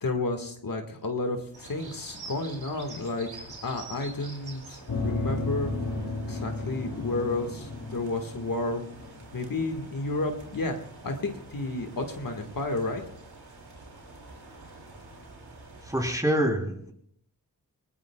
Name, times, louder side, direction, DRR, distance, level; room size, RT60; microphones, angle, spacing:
voice 1, 0.0-5.7 6.3-8.8 9.3-10.8 11.0-13.0, left 2 dB, 55° left, 4 dB, 1.8 m, -31 dB
sound 1, 1.5-16.2, right 3 dB, 70° right, 3.5 m, -47 dB
sound 2, 4.9-9.8, left 2 dB, 80° left, 3.2 m, -33 dB
voice 2, 15.8-16.9, equal, 10° right, 1 dB, 3.3 m, -26 dB
20.0 x 19.5 x 2.4 m, 0.70 s
cardioid pair, 55°, 39 cm